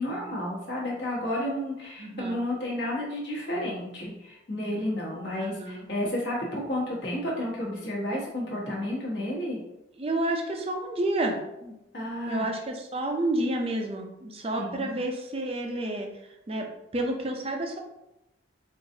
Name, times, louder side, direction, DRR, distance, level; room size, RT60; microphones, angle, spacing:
voice 1, 0.0-9.6 11.9-12.4 14.6-14.9, left 1 dB, 55° left, -4 dB, 1.2 m, -31 dB
voice 2, 2.0-2.4 5.4-5.9 10.0-11.7 12.3-16.1 16.5-16.7 16.9-17.8, right 1 dB, 30° right, 2 dB, 0.5 m, -30 dB
4.7 x 2.5 x 2.7 m, 0.92 s
head